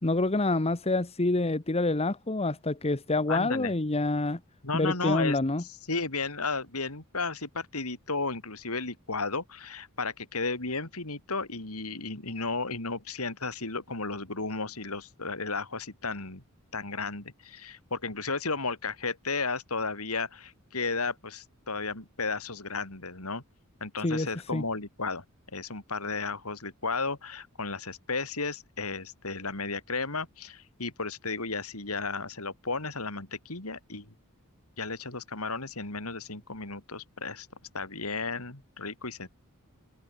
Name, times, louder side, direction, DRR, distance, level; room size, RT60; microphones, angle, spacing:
voice 1, 0.0-4.4 4.7-5.6 24.0-24.6, left 2 dB, 30° left, 1.1 m, -27 dB
voice 2, 3.3-3.7 4.6-5.4 5.9-16.4 16.7-23.4 23.8-25.2 25.5-34.1 34.8-37.5 37.7-39.3, left 4 dB, 75° left, 4.0 m, -34 dB
head